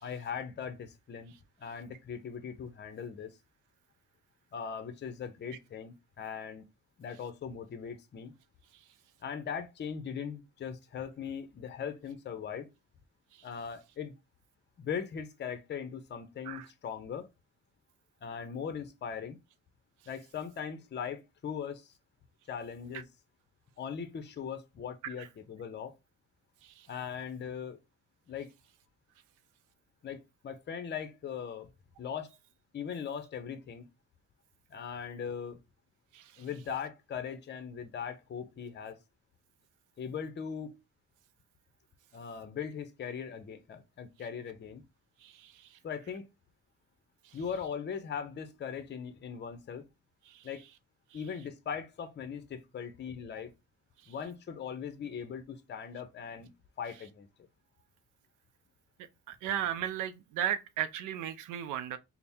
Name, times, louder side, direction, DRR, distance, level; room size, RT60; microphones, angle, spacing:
voice 1, 0.0-1.3 1.6-3.3 4.5-6.6 7.0-8.3 9.2-12.7 13.4-14.1 14.8-17.3 18.2-19.4 20.1-21.9 22.5-23.0 23.8-25.9 26.9-27.8 28.3-28.5 30.0-31.7 32.0-32.3 32.7-33.8 34.7-35.6 36.4-39.0 40.0-40.8 42.1-44.8 45.8-46.3 47.3-49.9 50.4-50.6 51.1-53.5 54.1-57.3, left 7 dB, 35° left, 0.6 m, -39 dB
voice 2, 59.3-62.0, right 10 dB, 90° right, 0.5 m, -34 dB
3.3 x 2.1 x 4.2 m
cardioid pair, 90°, 30 cm